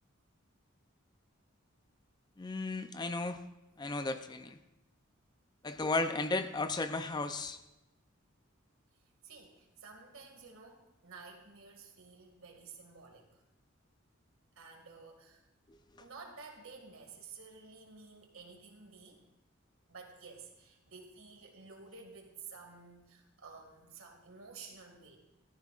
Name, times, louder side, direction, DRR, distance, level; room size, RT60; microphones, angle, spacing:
voice 1, 2.4-3.4 3.8-4.6 5.6-7.6, left 3 dB, 20° left, 9 dB, 0.4 m, -34 dB
voice 2, 9.2-13.4 14.6-15.4 16.0-19.2 19.9-25.2, right 4 dB, 80° right, 2 dB, 2.0 m, -52 dB
14.5 x 13.0 x 2.4 m, 0.96 s
head